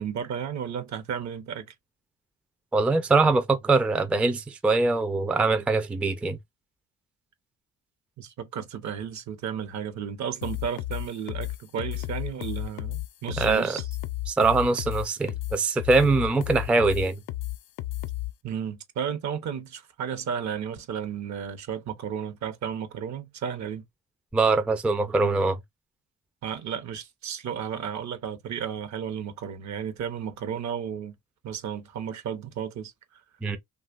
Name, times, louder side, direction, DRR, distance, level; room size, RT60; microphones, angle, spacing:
voice 1, 0.0-1.7 8.2-13.8 18.4-23.8 26.4-31.1 31.4-33.2, right 8 dB, 65° right, 0.8 m, -33 dB
voice 2, 2.7-6.4 13.4-13.8 14.3-17.2 24.3-25.6 33.4-33.6, right 3 dB, 5° right, 0.3 m, -23 dB
sound 1, 10.4-18.3, left 16 dB, 80° left, 0.5 m, -32 dB
2.9 x 2.3 x 2.4 m
cardioid pair, 90°, 30 cm